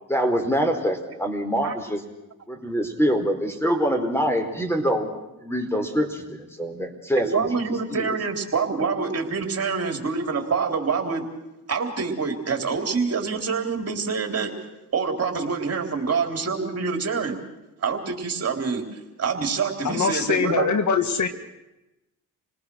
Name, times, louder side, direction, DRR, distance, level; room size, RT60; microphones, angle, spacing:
voice 1, 0.1-2.0 2.5-5.1 5.4-7.6 7.9-8.2, equal, 5° left, 6 dB, 4.3 m, -25 dB
voice 2, 7.3-11.3 11.7-14.5 14.9-17.4 17.8-18.8 19.2-20.7, right 5 dB, 45° right, 4 dB, 3.8 m, -26 dB
voice 3, 19.8-21.3, left 5 dB, 55° left, 9 dB, 1.8 m, -23 dB
28.0 x 19.0 x 6.4 m, 0.95 s
cardioid pair, 75°, 35 cm